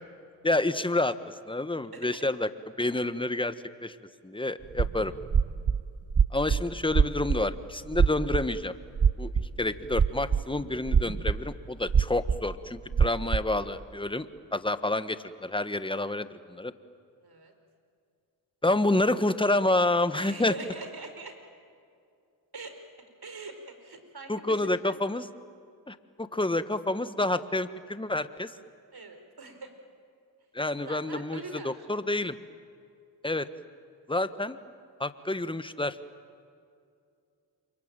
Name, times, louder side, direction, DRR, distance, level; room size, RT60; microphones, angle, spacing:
voice 1, 0.4-1.2 1.5-2.5 2.8-3.5 3.8-4.0 4.2-5.1 6.3-8.7 9.2-9.3 9.6-14.3 14.5-16.7 18.6-20.5 24.3-25.3 25.9-28.5 30.5-31.4 31.6-32.3 33.2-33.5 34.1-34.6 35.0-36.0, left 2 dB, 10° left, 12 dB, 1.4 m, -28 dB
voice 2, 1.9-2.2 17.2-17.5 20.1-21.4 22.5-25.0 28.9-29.7 30.8-31.9, right 3 dB, 50° right, 6 dB, 5.2 m, -43 dB
sound 1, 4.7-5.8 6.1-6.6 6.9-7.4 7.9-8.5 9.0-9.7 9.9-10.4 10.9-11.4 11.7-12.4 12.9-13.4, right 6 dB, 30° right, 0.8 m, -23 dB
28.0 x 23.5 x 9.1 m, 2.4 s
supercardioid pair, 50°, 48 cm